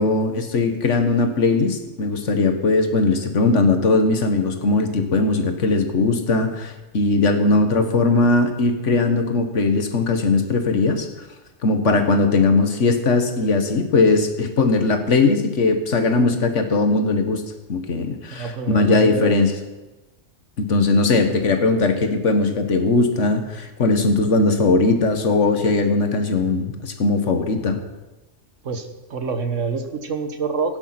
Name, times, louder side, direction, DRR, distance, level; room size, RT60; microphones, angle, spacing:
voice 1, 0.0-11.1 11.6-17.4 17.7-19.5 20.6-27.8, left 3 dB, 75° left, 7 dB, 1.7 m, -19 dB
voice 2, 18.3-19.3 28.6-30.8, right 4 dB, 85° right, 8 dB, 1.6 m, -26 dB
16.5 x 9.9 x 5.9 m, 1.1 s
omnidirectional pair, 1.3 m